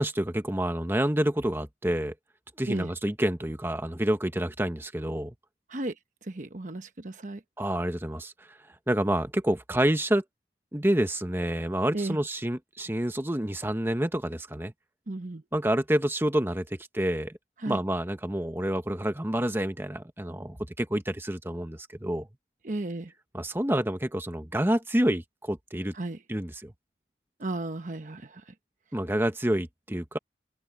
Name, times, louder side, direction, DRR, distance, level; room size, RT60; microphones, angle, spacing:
voice 1, 0.0-2.1 2.6-5.3 7.6-8.3 8.9-10.2 10.7-14.7 15.5-17.4 17.7-22.3 23.3-25.9 26.3-26.7 28.9-30.2, right 1 dB, 15° right, 1.1 m, -28 dB
voice 2, 6.2-7.4 11.9-12.2 15.1-15.4 17.6-17.8 22.6-23.1 25.9-26.2 27.4-28.5, right 2 dB, 45° right, 1.0 m, -34 dB
head